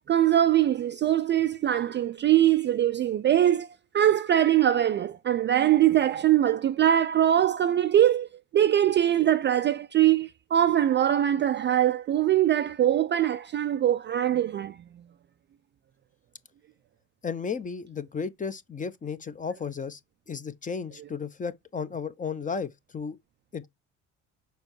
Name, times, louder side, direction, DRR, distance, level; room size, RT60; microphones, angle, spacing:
voice 1, 0.1-3.7 3.9-14.8, right 11 dB, 30° right, 0.4 m, -22 dB
voice 2, 17.2-20.0 20.3-23.2 23.5-23.7, left 5 dB, 20° left, 0.6 m, -34 dB
6.8 x 4.5 x 3.1 m
hypercardioid pair, 60°, 41 cm